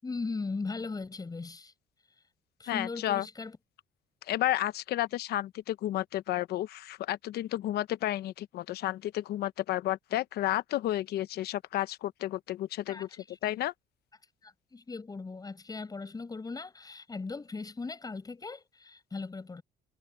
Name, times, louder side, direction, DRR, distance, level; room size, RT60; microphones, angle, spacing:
voice 1, 0.0-1.7 2.6-3.6 12.9-13.5 14.4-19.6, left 4 dB, 20° left, 6.8 m, -38 dB
voice 2, 2.7-3.3 4.3-13.1 13.4-13.7, left 14 dB, 70° left, 0.9 m, -31 dB
cardioid pair, 110°, 17 cm